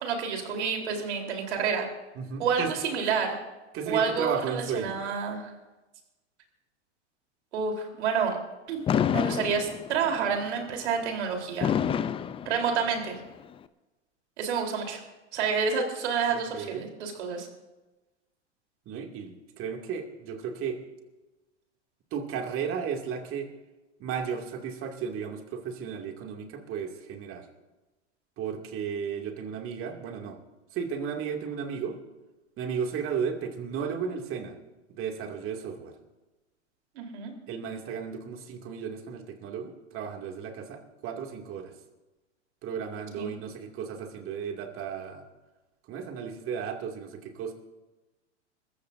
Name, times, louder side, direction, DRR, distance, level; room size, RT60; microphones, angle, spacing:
voice 1, 0.0-1.9 2.4-3.4 3.9-5.5 7.5-8.4 8.7-8.8 9.1-11.7 12.5-13.2 14.4-15.0 15.3-17.5 37.0-37.3 43.2-43.3, right 6 dB, 70° right, 2 dB, 3.9 m, -29 dB
voice 2, 2.1-2.7 3.7-5.0 16.3-16.9 18.9-20.8 22.1-23.5 24.0-27.5 28.4-30.4 30.7-32.0 32.6-34.6 34.9-35.9 37.5-41.7 42.6-45.2 45.9-47.5, right 7 dB, 40° right, 3 dB, 2.5 m, -34 dB
Fireworks, 8.9-10.2 11.6-13.2, left 8 dB, 15° left, 0.4 m, -27 dB
21.5 x 15.0 x 2.7 m, 1.1 s
hypercardioid pair, 110°, 35 cm